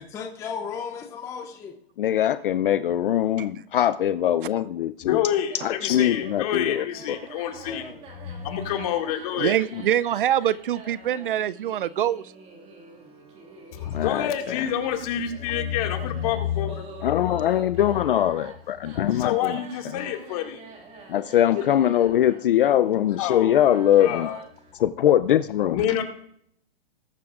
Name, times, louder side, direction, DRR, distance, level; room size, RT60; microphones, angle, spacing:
voice 1, 0.0-1.8 7.7-8.0, left 6 dB, 10° left, 3 dB, 0.6 m, -35 dB
voice 2, 2.0-5.2 5.6-7.2 13.9-14.6 17.0-19.6 21.1-24.3 24.8-25.8, left 11 dB, 55° left, 13 dB, 0.6 m, -22 dB
voice 3, 5.0-7.9 8.1-9.6 13.8-16.9 19.0-20.6 21.5-21.6 23.2-24.4 25.7-26.0, left 10 dB, 35° left, 3 dB, 2.1 m, -28 dB
sound 1, 5.5-24.7, right 4 dB, 20° right, 2.2 m, -46 dB
voice 4, 9.4-12.2, right 11 dB, 55° right, 18 dB, 0.4 m, -24 dB
20.0 x 10.5 x 2.5 m, 0.65 s
hypercardioid pair, 155°, 31 cm